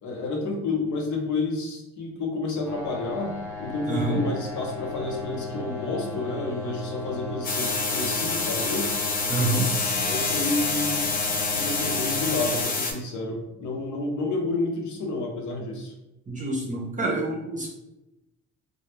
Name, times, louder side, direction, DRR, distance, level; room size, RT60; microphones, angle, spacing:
voice 1, 0.0-8.9 10.1-15.9, left 3 dB, 70° left, 0 dB, 0.7 m, -30 dB
sound 1, 2.6-12.6, left 2 dB, 10° left, 0.9 m, -36 dB
voice 2, 3.9-4.2 9.3-9.7 16.3-17.7, right 2 dB, 25° right, -3 dB, 0.5 m, -27 dB
sound 2, 7.4-12.9, left 3 dB, 30° left, 0.5 m, -27 dB
2.1 x 2.0 x 3.0 m, 0.96 s
cardioid pair, 90°, 30 cm